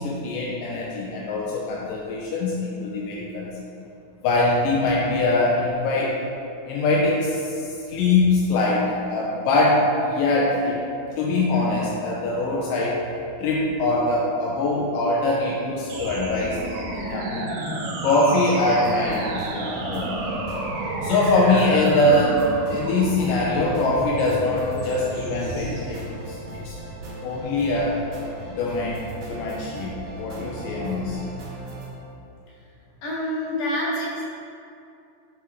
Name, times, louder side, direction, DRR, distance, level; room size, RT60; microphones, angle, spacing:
voice 1, 0.0-3.5 4.2-6.2 6.7-10.8 11.2-13.0 13.4-16.6 16.9-17.5 18.0-20.1 21.0-26.0 26.3-26.4 26.6-26.8 27.2-28.0 28.5-31.2, left 2 dB, 80° left, -3 dB, 2.0 m, -23 dB
sound 1, 15.9-25.9, right 2 dB, 85° right, 1.5 m, -31 dB
sound 2, 18.8-31.9, right 2 dB, 70° right, 1.4 m, -37 dB
voice 2, 33.0-34.2, left 1 dB, 60° left, -6 dB, 2.5 m, -27 dB
6.1 x 5.8 x 3.6 m, 2.6 s
omnidirectional pair, 4.3 m